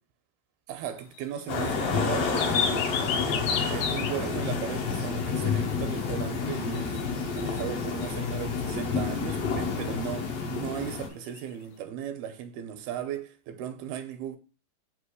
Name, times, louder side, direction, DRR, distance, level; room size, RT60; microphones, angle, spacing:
voice 1, 0.7-7.0 7.3-14.4, right 9 dB, 80° right, 2.7 m, -37 dB
sound 1, 1.2-1.6 2.0-4.2 4.5-4.6 6.7-7.0 7.4-8.1 11.4-11.5, left 7 dB, 75° left, 1.8 m, -30 dB
sound 2, 1.5-11.1, left 5 dB, 55° left, 1.8 m, -29 dB
8.4 x 3.0 x 6.2 m
omnidirectional pair, 4.4 m